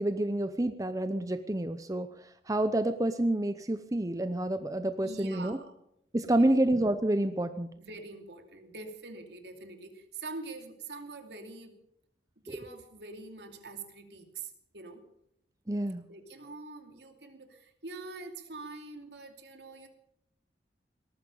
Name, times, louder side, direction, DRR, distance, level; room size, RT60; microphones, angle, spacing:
voice 1, 0.0-2.1 2.5-5.6 6.1-7.7 12.5-12.6 15.7-16.0, right 1 dB, 20° right, 10 dB, 0.7 m, -28 dB
voice 2, 5.0-5.7 6.2-6.5 7.8-11.7 12.4-15.0 16.1-19.9, right 3 dB, 70° right, 5 dB, 2.8 m, -44 dB
19.0 x 14.0 x 5.4 m, 0.76 s
head